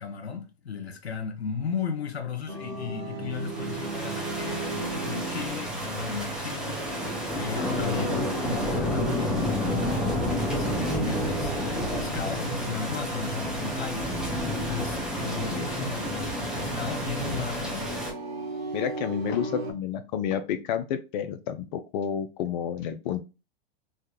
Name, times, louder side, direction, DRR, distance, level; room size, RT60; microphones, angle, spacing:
voice 1, 0.0-18.0, left 6 dB, 90° left, 0.8 m, -36 dB
sound 1, 2.5-19.7, right 3 dB, 70° right, 0.9 m, -36 dB
sound 2, 3.4-18.1, left 1 dB, ahead, 0.7 m, -30 dB
voice 2, 7.5-8.2 15.4-15.7 18.7-23.2, left 9 dB, 50° left, 0.4 m, -31 dB
3.4 x 2.1 x 2.8 m
hypercardioid pair, 120°, 31 cm